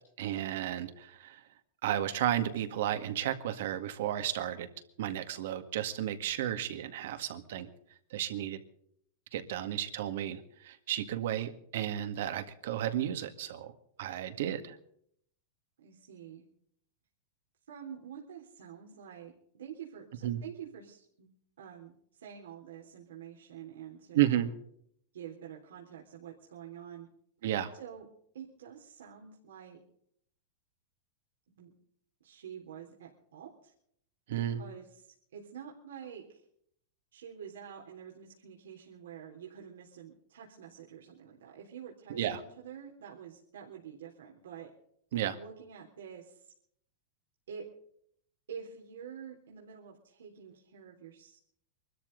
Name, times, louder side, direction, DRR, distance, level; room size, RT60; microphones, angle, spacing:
voice 1, 0.2-1.4 1.8-4.7 5.0-7.7 8.1-8.6 9.3-13.7 14.0-14.8 20.2-20.4 24.1-24.5 27.4-27.7 34.3-34.6 42.1-42.4 45.1-45.4, right 11 dB, 70° right, 8 dB, 1.9 m, -33 dB
voice 2, 15.8-16.4 17.7-21.3 21.6-24.4 25.1-27.1 27.7-28.1 28.3-29.8 31.5-31.7 32.2-33.7 34.3-36.4 37.1-44.7 45.4-46.5 47.5-47.6 48.5-51.4, right 8 dB, 90° right, -2 dB, 3.5 m, -48 dB
23.5 x 13.5 x 4.0 m, 0.68 s
supercardioid pair, 135°, 0 cm